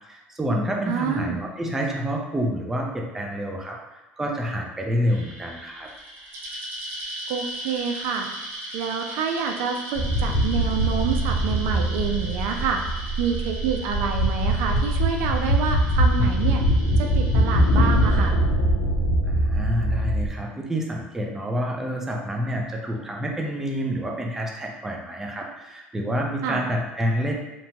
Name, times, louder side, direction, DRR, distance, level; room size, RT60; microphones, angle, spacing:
voice 1, 0.1-5.9 19.2-27.4, equal, 10° right, 0 dB, 0.4 m, -28 dB
voice 2, 0.9-1.4 7.3-8.3 8.7-12.8 13.2-16.6 17.0-18.4 26.4-26.6, right 6 dB, 80° right, 4 dB, 0.3 m, -27 dB
sound 1, 5.1-18.3, right 1 dB, 50° right, 0.8 m, -38 dB
sound 2, 10.0-20.3, right 1 dB, 80° left, 0.5 m, -22 dB
2.8 x 2.2 x 2.7 m, 1.1 s
cardioid pair, 135°, 4 cm